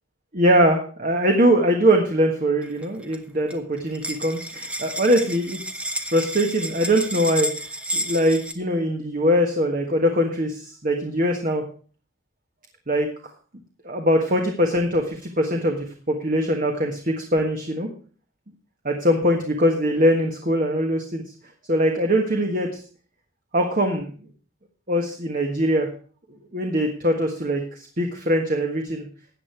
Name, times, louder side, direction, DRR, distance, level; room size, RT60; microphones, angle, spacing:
voice 1, 0.3-5.6 6.1-7.5 7.9-11.6 12.9-13.1 13.8-17.9 18.8-21.2 21.7-22.8 23.5-24.1 24.9-25.9 26.5-29.0, equal, 40° right, 3 dB, 1.5 m, -22 dB
sound 1, 2.6-3.2 3.5-3.6 3.8-8.5, equal, 5° right, 0.9 m, -31 dB
13.5 x 8.7 x 4.6 m, 0.41 s
head